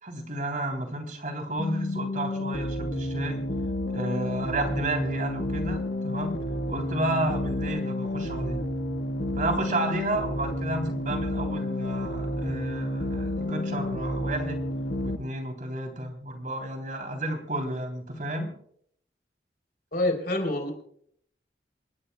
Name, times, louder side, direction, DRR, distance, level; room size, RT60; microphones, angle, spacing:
voice 1, 0.0-3.4 3.9-6.4 6.7-8.7 9.4-14.6 15.0-18.5, right 1 dB, 45° right, 3 dB, 3.4 m, -31 dB
sound 1, 1.6-15.2, left 1 dB, 85° left, 1.4 m, -30 dB
voice 2, 19.9-20.7, left 1 dB, 55° left, 4 dB, 3.8 m, -26 dB
28.0 x 12.5 x 2.3 m, 0.65 s
head